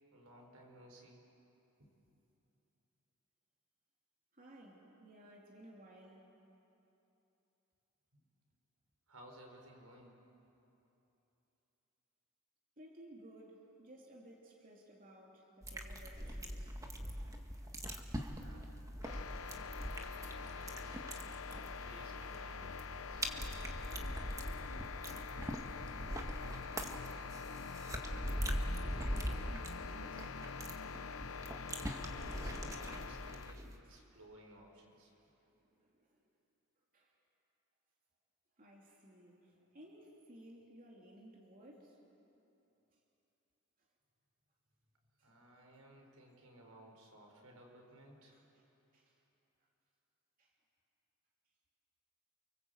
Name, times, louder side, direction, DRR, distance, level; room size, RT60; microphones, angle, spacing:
voice 1, 0.1-1.3 1.8-1.9 8.1-8.2 9.1-10.2 18.3-18.8 19.1-19.6 20.6-21.1 21.5-23.3 32.1-35.1 45.2-48.3, right 1 dB, 80° right, 2 dB, 4.8 m, -58 dB
voice 2, 4.3-6.3 12.8-16.8 28.7-30.3 33.8-34.0 35.5-36.2 36.9-37.1 38.6-42.0 45.2-45.3 48.3-48.7 48.9-49.2 50.4-50.5, right 1 dB, 40° right, -2 dB, 3.0 m, -58 dB
sound 1, 15.6-33.8, equal, 15° right, 1.7 m, -42 dB
sound 2, 19.0-33.5, left 6 dB, 75° left, 0.8 m, -46 dB
29.0 x 24.5 x 8.1 m, 3.0 s
head